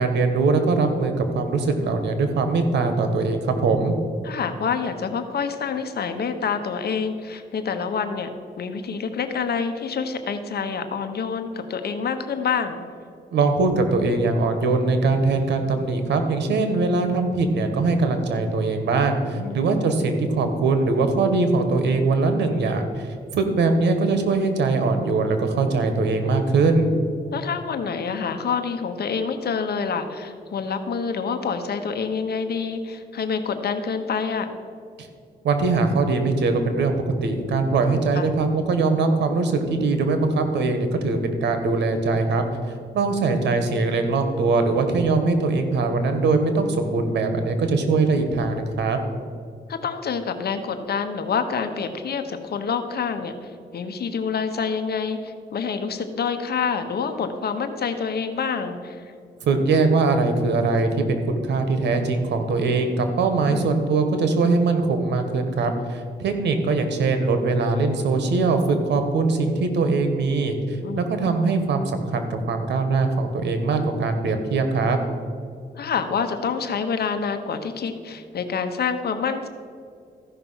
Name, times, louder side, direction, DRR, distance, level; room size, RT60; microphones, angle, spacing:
voice 1, 0.0-3.9 13.3-26.9 35.4-36.9 37.2-42.4 42.9-49.0 59.4-75.0, right 3 dB, 90° right, 7 dB, 1.3 m, -22 dB
voice 2, 4.2-8.3 8.6-12.8 19.2-19.6 27.3-34.5 38.1-38.3 49.7-59.0 63.2-63.6 70.8-71.1 75.8-79.5, left 6 dB, 65° left, 8 dB, 1.1 m, -27 dB
14.0 x 5.7 x 5.6 m, 2.3 s
cardioid pair, 85°, 18 cm